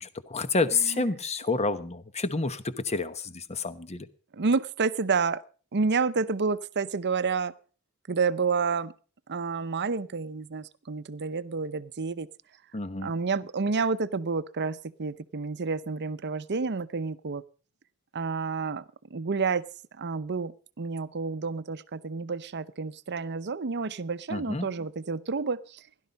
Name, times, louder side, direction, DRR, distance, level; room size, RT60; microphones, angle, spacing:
voice 1, 0.0-4.1 12.7-13.1 24.3-24.7, left 3 dB, 30° left, 13 dB, 1.1 m, -29 dB
voice 2, 4.3-5.4 5.7-7.5 8.1-8.9 9.3-12.3 13.0-17.4 18.1-18.8 19.1-19.6 20.0-25.8, right 4 dB, 50° right, 16 dB, 0.7 m, -29 dB
17.0 x 11.5 x 5.3 m, 0.39 s
head